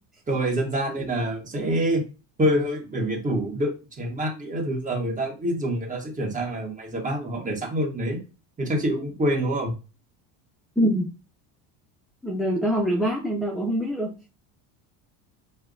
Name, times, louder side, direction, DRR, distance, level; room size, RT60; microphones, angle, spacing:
voice 1, 0.3-2.0 2.4-8.2 8.6-9.7, right 1 dB, 20° right, 1 dB, 1.3 m, -26 dB
voice 2, 10.8-11.1 12.2-14.1, equal, ahead, 1 dB, 0.4 m, -24 dB
4.6 x 2.2 x 2.6 m, 0.31 s
supercardioid pair, 110°, 38 cm